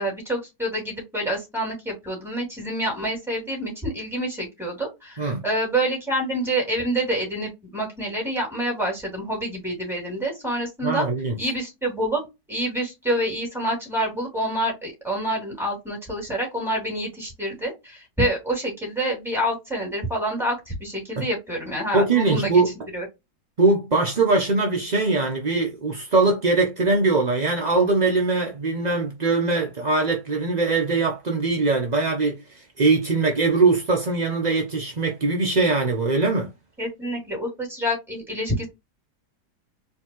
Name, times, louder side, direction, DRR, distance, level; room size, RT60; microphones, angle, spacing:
voice 1, 0.0-11.1 11.4-12.2 12.5-22.6 22.9-23.0 36.8-38.7, right 1 dB, ahead, 2.7 m, -27 dB
voice 2, 10.8-11.4 21.2-21.3 21.9-22.7 23.6-36.5, right 3 dB, 45° right, 0.5 m, -21 dB
4.6 x 3.1 x 3.0 m
omnidirectional pair, 2.0 m